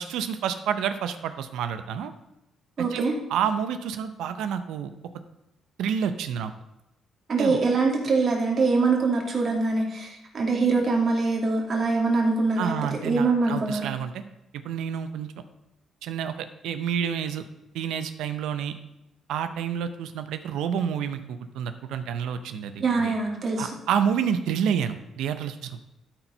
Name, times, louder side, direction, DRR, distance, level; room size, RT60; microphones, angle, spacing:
voice 1, 0.0-2.1 2.8-3.0 3.3-4.9 5.8-6.5 7.4-7.6 12.6-14.2 14.5-15.3 16.0-17.4 17.7-18.7 19.3-23.1 23.6-25.8, right 8 dB, 85° right, 10 dB, 0.7 m, -29 dB
voice 2, 2.8-3.1 7.3-12.7 13.0-13.9 22.8-23.7, right 3 dB, 45° right, 0 dB, 2.7 m, -23 dB
13.0 x 4.6 x 5.4 m, 0.90 s
cardioid pair, 90°, 0 cm